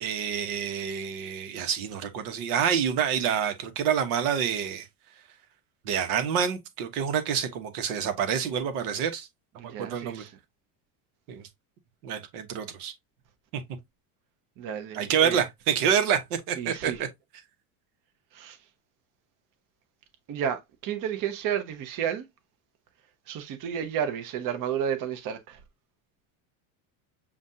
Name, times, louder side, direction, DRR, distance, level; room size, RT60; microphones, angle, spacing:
voice 1, 0.0-4.9 5.8-9.3 9.6-10.2 11.3-11.5 12.0-12.9 13.5-13.6 14.9-17.1, right 8 dB, 80° right, 1.2 m, -27 dB
voice 2, 9.6-10.3 14.6-15.4 16.6-17.0 18.3-18.6 20.3-22.3 23.3-25.6, right 9 dB, 45° right, 0.9 m, -32 dB
7.1 x 2.5 x 2.7 m
supercardioid pair, 120°, 44 cm